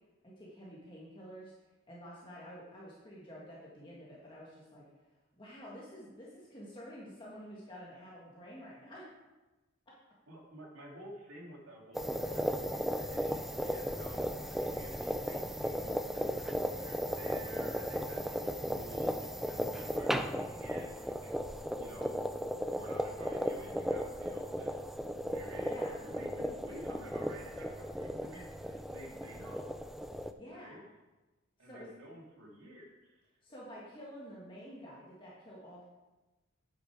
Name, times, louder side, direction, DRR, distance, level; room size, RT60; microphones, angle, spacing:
voice 1, 0.2-9.1 25.7-26.0 30.4-30.8 31.6-31.9 33.4-35.8, equal, 25° left, -6 dB, 1.7 m, -49 dB
voice 2, 10.3-21.5 21.8-24.8 25.3-29.7 30.5-30.8 31.6-33.3, right 1 dB, 85° right, -1 dB, 2.3 m, -51 dB
sound 1, 11.9-30.3, equal, ahead, 0.4 m, -36 dB
9.4 x 7.8 x 4.7 m, 1.1 s
head